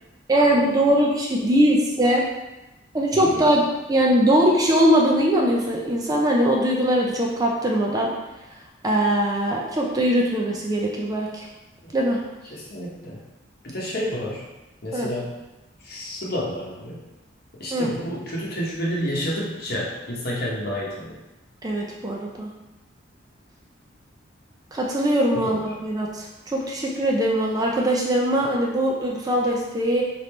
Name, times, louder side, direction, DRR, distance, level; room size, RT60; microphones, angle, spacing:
voice 1, 0.3-2.2 2.9-8.1 8.8-11.5 11.9-12.2 14.9-15.1 17.7-17.9 21.6-22.5 24.7-30.0, right 1 dB, 20° right, -1 dB, 0.4 m, -21 dB
voice 2, 3.1-3.4 11.8-11.9 12.5-13.2 13.6-14.5 14.8-15.4 15.8-17.0 17.5-21.2 25.3-25.6, equal, 50° left, -4 dB, 0.9 m, -30 dB
3.4 x 2.5 x 4.3 m, 1.0 s
head